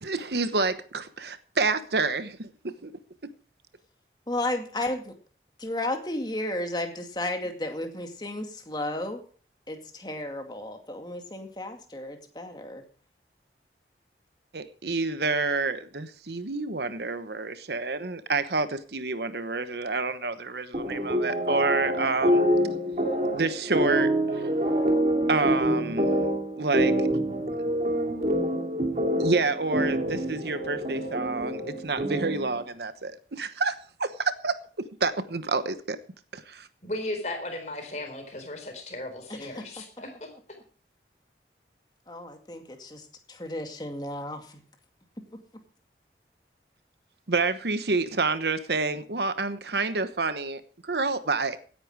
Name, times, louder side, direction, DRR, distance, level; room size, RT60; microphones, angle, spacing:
voice 1, 0.0-2.9 14.5-22.4 23.3-24.4 25.3-26.1 26.6-27.0 29.2-36.0 36.3-36.7 47.3-51.6, right 3 dB, 70° right, 1.1 m, -28 dB
voice 2, 4.3-5.1 5.6-9.2 9.7-12.8 39.3-39.6 42.1-44.6 45.3-45.4, left 1 dB, 25° left, 2.2 m, -33 dB
sound 1, 20.7-32.5, equal, 40° right, 2.6 m, -26 dB
voice 3, 36.8-40.3, left 1 dB, 40° left, 4.2 m, -36 dB
17.0 x 10.0 x 4.7 m
head